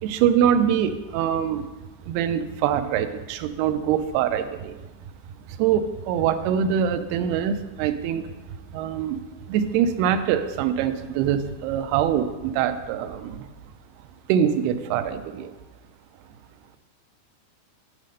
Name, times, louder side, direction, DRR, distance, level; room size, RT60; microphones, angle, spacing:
voice 1, 0.0-1.7 2.1-4.8 5.6-8.3 8.7-9.2 9.5-13.5 14.3-15.5, right 9 dB, 90° right, 10 dB, 2.5 m, -24 dB
8.1 x 4.1 x 6.4 m, 1.1 s
omnidirectional pair, 4.4 m